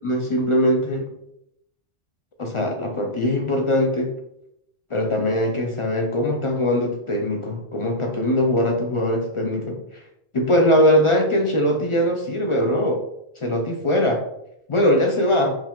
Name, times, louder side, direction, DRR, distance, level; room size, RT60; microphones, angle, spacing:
voice 1, 0.0-1.1 2.4-4.1 4.9-10.0 10.3-13.0 13.4-14.2 14.7-15.6, left 1 dB, 45° left, 2 dB, 0.4 m, -21 dB
4.6 x 2.2 x 3.6 m, 0.79 s
omnidirectional pair, 1.1 m